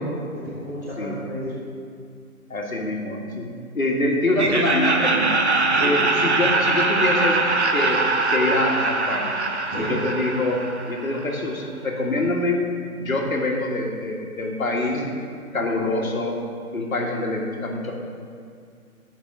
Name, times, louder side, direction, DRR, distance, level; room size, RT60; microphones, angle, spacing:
voice 1, 0.0-1.5 5.7-5.9 9.7-10.0 14.8-15.0, equal, 10° right, -12 dB, 1.3 m, -32 dB
voice 2, 2.5-3.5 3.7-5.4 5.8-7.4 7.7-9.4 9.8-12.7 13.0-15.0 15.5-16.4 16.7-17.9, left 2 dB, 65° left, 0 dB, 1.9 m, -25 dB
Laughter, 4.3-11.3, right 3 dB, 45° right, 0.9 m, -22 dB
sound 1, 4.7-8.3, equal, 15° left, 2.4 m, -34 dB
17.5 x 6.0 x 3.7 m, 2.2 s
figure-of-eight pair, 165°, 45 cm